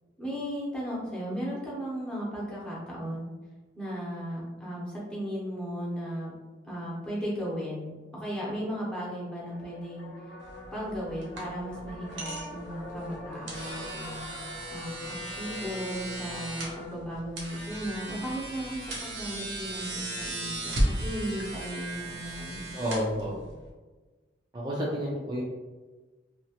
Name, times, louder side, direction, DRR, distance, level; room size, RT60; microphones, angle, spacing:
voice 1, 0.2-3.3 3.7-6.3 6.6-10.1 10.7-15.0 15.3-22.8, equal, 5° left, -7 dB, 0.9 m, -36 dB
sound 1, 9.4-17.0, left 2 dB, 55° left, 0.5 m, -44 dB
sound 2, 10.4-23.7, right 1 dB, 90° right, 0.8 m, -36 dB
voice 2, 22.7-23.4 24.5-25.4, equal, 25° right, -6 dB, 0.5 m, -30 dB
2.9 x 2.4 x 2.9 m, 1.3 s
head